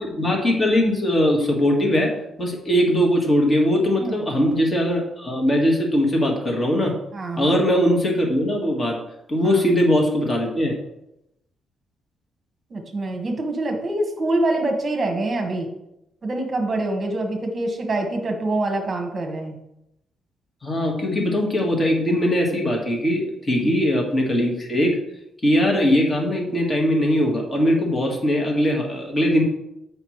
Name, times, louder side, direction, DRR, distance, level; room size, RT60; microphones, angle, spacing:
voice 1, 0.0-2.1 2.4-6.9 7.4-9.0 9.3-10.8 20.6-25.0 25.4-29.4, equal, 25° left, 0 dB, 1.6 m, -20 dB
voice 2, 7.1-7.6 9.4-9.6 12.7-15.7 16.2-19.6 23.6-23.7, right 2 dB, 35° right, 4 dB, 1.3 m, -25 dB
7.9 x 5.3 x 3.1 m, 0.84 s
cardioid pair, 120°, 0 cm